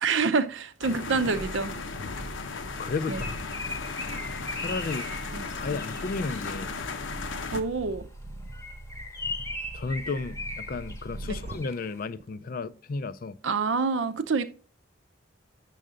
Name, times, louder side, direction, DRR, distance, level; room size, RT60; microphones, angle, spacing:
voice 1, 0.0-1.7 3.1-3.2 5.3-5.5 7.5-8.1 11.2-11.4 13.4-14.5, right 4 dB, 70° right, 0.6 m, -27 dB
sound 1, 0.8-7.6, left 4 dB, 75° left, 0.8 m, -36 dB
sound 2, 1.1-11.7 12.2-12.3, right 2 dB, 30° right, 0.4 m, -42 dB
Bird, 2.7-6.8 8.4-11.9, left 2 dB, 15° left, 0.9 m, -39 dB
voice 2, 2.8-3.5 4.5-5.1 5.6-6.7 9.7-13.3, left 3 dB, 45° left, 0.4 m, -33 dB
7.6 x 6.5 x 3.7 m
head